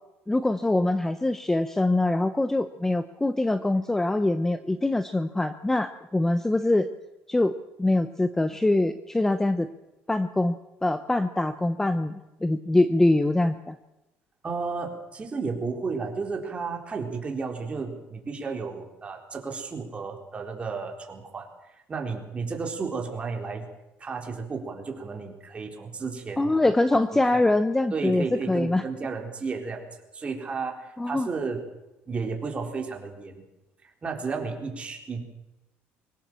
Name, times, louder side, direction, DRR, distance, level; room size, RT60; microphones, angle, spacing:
voice 1, 0.3-6.9 7.3-9.7 10.1-12.1 12.4-13.8 26.4-28.8 31.0-31.3, left 2 dB, 10° left, 11 dB, 0.8 m, -24 dB
voice 2, 14.4-21.5 21.9-23.7 24.0-26.6 27.3-27.4 27.9-29.9 30.1-31.6 32.1-33.4 33.8-35.2, right 4 dB, 25° right, 2 dB, 4.2 m, -33 dB
23.5 x 16.5 x 7.6 m, 0.96 s
cardioid pair, 125°, 5 cm